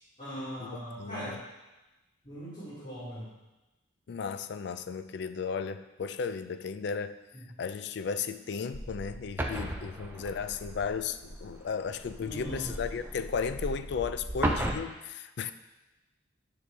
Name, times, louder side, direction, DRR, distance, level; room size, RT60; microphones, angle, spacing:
voice 1, 0.2-1.4 2.2-3.3 7.3-7.5 12.2-12.7, equal, 40° left, -12 dB, 2.5 m, -40 dB
voice 2, 1.0-1.4 4.1-7.2 7.6-15.5, left 6 dB, 55° left, 11 dB, 0.3 m, -35 dB
sound 1, 8.7-14.7, right 1 dB, 10° right, 0.5 m, -36 dB
9.4 x 6.0 x 3.3 m, 1.1 s
head